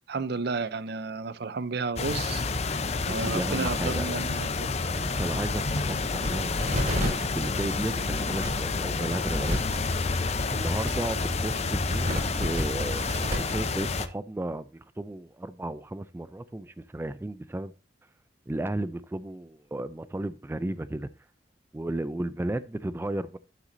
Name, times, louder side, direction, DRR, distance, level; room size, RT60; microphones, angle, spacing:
voice 1, 0.1-2.4 3.1-4.7 5.1-5.2, right 4 dB, 60° right, 0.6 m, -32 dB
sound 1, 2.0-14.1, left 4 dB, 35° left, 0.6 m, -29 dB
voice 2, 3.0-4.1 5.0-10.1 10.5-12.1 12.3-13.1 13.4-17.7 18.5-21.1 21.7-23.4, right 1 dB, 10° right, 0.3 m, -34 dB
sound 2, 4.9-13.4, equal, 40° right, 4.7 m, -34 dB
12.0 x 6.0 x 2.6 m
head